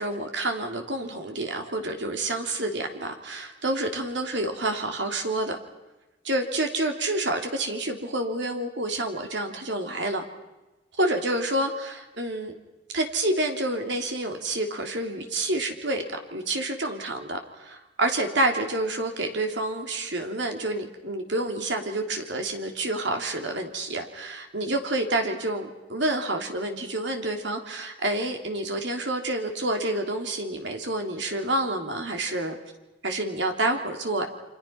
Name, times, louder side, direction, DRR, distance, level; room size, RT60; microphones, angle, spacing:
voice 1, 0.0-5.6 6.2-10.2 11.0-12.5 12.9-32.6 33.0-34.3, right 1 dB, 65° right, 4 dB, 3.2 m, -28 dB
29.0 x 26.5 x 5.9 m, 1.1 s
head